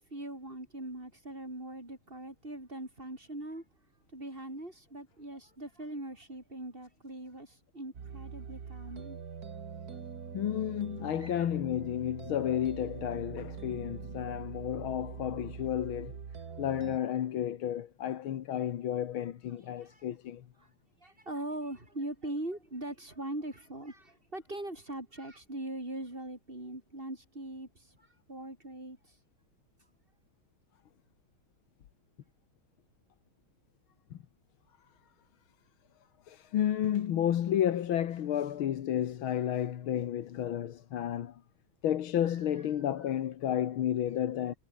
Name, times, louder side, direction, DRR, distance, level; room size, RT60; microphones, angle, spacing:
voice 1, 0.0-3.6 4.1-9.2 9.9-10.0 11.2-11.5 19.8-20.1 21.0-28.0 28.3-29.0, right 1 dB, 25° right, 6.5 m, -41 dB
sound 1, 7.9-17.0, right 6 dB, 50° right, 2.1 m, -43 dB
voice 2, 10.3-16.2 16.6-20.5 34.1-34.2 36.3-41.4 41.8-44.5, left 10 dB, 80° left, 2.0 m, -32 dB
omnidirectional pair, 2.3 m